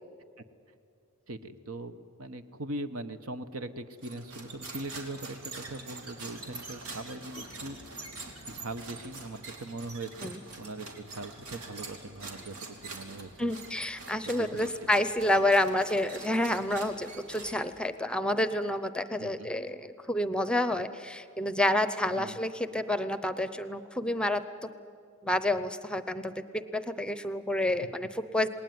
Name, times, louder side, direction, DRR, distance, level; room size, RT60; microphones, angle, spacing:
voice 1, 1.3-7.8 8.5-13.5 14.2-14.7 19.2-19.5 22.2-22.4, right 2 dB, 70° right, 10 dB, 1.2 m, -41 dB
sound 1, 4.0-17.9, right 3 dB, 90° right, 3.1 m, -45 dB
voice 2, 13.4-24.7 25.2-28.5, left 1 dB, 5° left, 13 dB, 0.7 m, -29 dB
28.0 x 19.5 x 9.5 m, 2.4 s
head